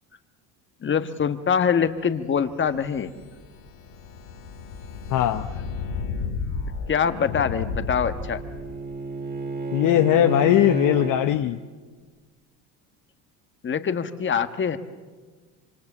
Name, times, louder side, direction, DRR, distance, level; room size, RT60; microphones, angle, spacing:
voice 1, 0.8-3.1 6.9-8.4 13.6-14.8, left 7 dB, 30° left, 10 dB, 1.4 m, -24 dB
sound 1, 2.4-8.8, left 5 dB, 90° left, 4.1 m, -33 dB
voice 2, 5.1-5.5 9.7-11.6, left 13 dB, 50° left, 9 dB, 0.9 m, -20 dB
Bowed string instrument, 7.3-11.3, right 4 dB, 25° right, 2.4 m, -31 dB
26.0 x 24.5 x 7.3 m, 1.4 s
supercardioid pair, 90°, 39 cm